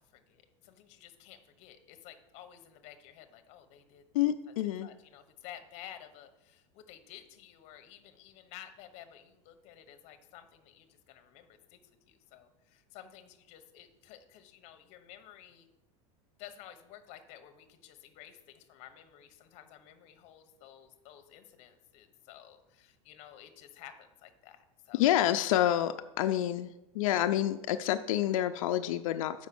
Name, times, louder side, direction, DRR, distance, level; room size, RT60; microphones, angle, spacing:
voice 1, 0.0-4.3 4.8-11.8 12.1-15.7 16.4-25.0, left 11 dB, 40° left, 8 dB, 0.8 m, -53 dB
voice 2, 4.1-4.9 24.9-29.5, left 12 dB, 85° left, 8 dB, 0.4 m, -28 dB
6.2 x 5.2 x 6.8 m, 0.97 s
supercardioid pair, 155°, 17 cm